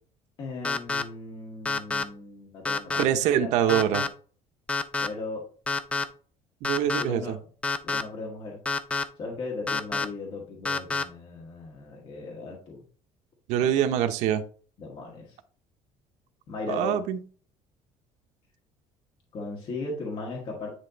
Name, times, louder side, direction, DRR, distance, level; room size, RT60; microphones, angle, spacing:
voice 1, 0.4-3.5 5.0-5.4 7.0-7.4 7.8-8.6 9.2-12.8 13.6-13.9 14.8-15.4 16.5-17.0 19.3-20.7, left 3 dB, 45° left, -2 dB, 1.8 m, -37 dB
sound 1, 0.6-1.0 1.7-2.0 2.7-3.0 3.7-4.1 4.7-5.1 5.7-6.0 6.6-7.0 7.6-8.0 8.7-9.0 9.7-10.1 10.7-11.0, left 4 dB, 10° left, 0.5 m, -27 dB
voice 2, 3.0-4.0 6.6-7.4 13.5-14.4 16.7-17.2, right 10 dB, 75° right, 8 dB, 0.8 m, -24 dB
9.8 x 3.3 x 4.0 m, 0.42 s
cardioid pair, 160°, 12 cm